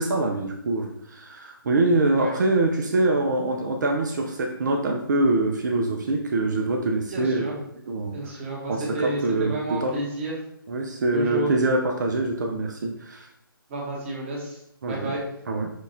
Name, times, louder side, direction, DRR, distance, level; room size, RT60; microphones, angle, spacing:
voice 1, 0.0-7.5 7.9-8.3 8.7-10.0 10.7-13.3 14.8-15.1 15.5-15.7, right 2 dB, 50° right, 2 dB, 0.5 m, -24 dB
voice 2, 7.1-7.5 8.1-10.3 11.1-11.5 13.7-14.6 14.9-15.2, right 2 dB, 30° right, -3 dB, 1.2 m, -31 dB
6.2 x 2.3 x 2.6 m, 0.75 s
figure-of-eight pair, 150°, 12 cm